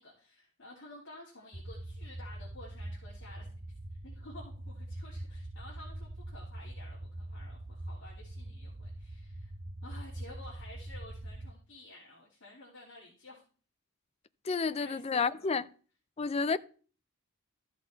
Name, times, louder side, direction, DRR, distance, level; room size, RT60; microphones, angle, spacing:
voice 1, 0.0-9.5 9.8-13.4 14.8-15.6, left 2 dB, 55° left, 3.1 m, -52 dB
sound 1, 1.5-11.5, right 1 dB, 30° right, 0.6 m, -43 dB
voice 2, 14.4-15.6 16.2-16.6, left 4 dB, 25° left, 0.4 m, -30 dB
13.5 x 6.0 x 4.5 m
head